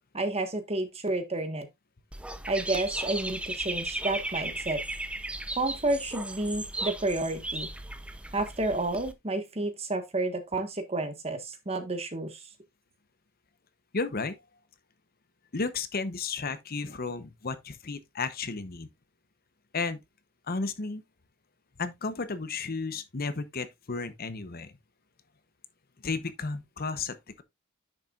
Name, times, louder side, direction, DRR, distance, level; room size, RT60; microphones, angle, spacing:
voice 1, 0.0-1.7 2.5-4.8 5.6-7.7 8.3-12.4, right 2 dB, 30° right, 1.4 m, -30 dB
Dog / Bird, 2.1-9.1, right 1 dB, 5° right, 0.6 m, -36 dB
voice 2, 13.9-14.4 15.5-18.9 19.7-20.0 20.5-21.0 21.8-24.7 26.0-27.4, left 4 dB, 45° left, 0.8 m, -33 dB
10.0 x 6.7 x 2.4 m
head